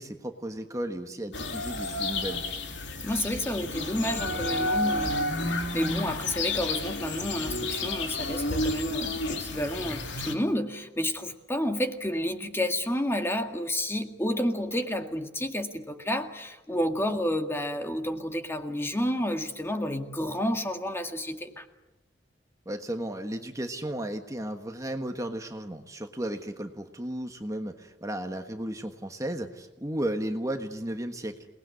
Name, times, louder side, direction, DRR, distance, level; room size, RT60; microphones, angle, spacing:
voice 1, 0.0-2.4 22.6-31.5, right 1 dB, 20° right, 6 dB, 1.4 m, -34 dB
sound 1, 1.3-10.3, left 2 dB, 75° left, 2.8 m, -31 dB
voice 2, 3.0-5.5 5.7-21.7, left 1 dB, 15° left, 6 dB, 2.0 m, -30 dB
28.5 x 19.5 x 9.7 m, 0.98 s
head